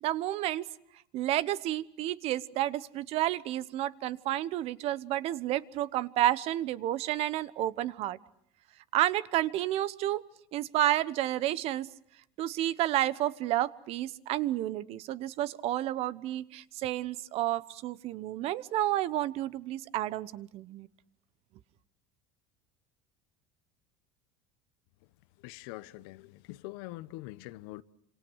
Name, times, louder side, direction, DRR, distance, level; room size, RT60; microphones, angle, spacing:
voice 1, 0.0-0.6 1.1-8.2 8.9-10.2 10.5-11.9 12.4-20.9, right 14 dB, 55° right, 1.0 m, -30 dB
voice 2, 25.4-27.8, left 18 dB, 75° left, 1.0 m, -44 dB
28.0 x 26.5 x 6.4 m
supercardioid pair, 125°, 13 cm